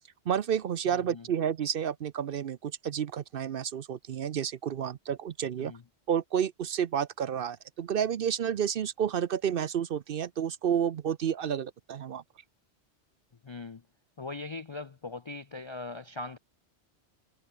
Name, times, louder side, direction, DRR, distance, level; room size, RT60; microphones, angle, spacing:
voice 1, 0.3-5.7 6.1-12.2, right 8 dB, 60° right, 0.8 m, -30 dB
voice 2, 0.9-1.3 5.6-5.8 13.4-13.8 14.2-16.4, left 3 dB, 40° left, 0.4 m, -40 dB
omnidirectional pair, 1.2 m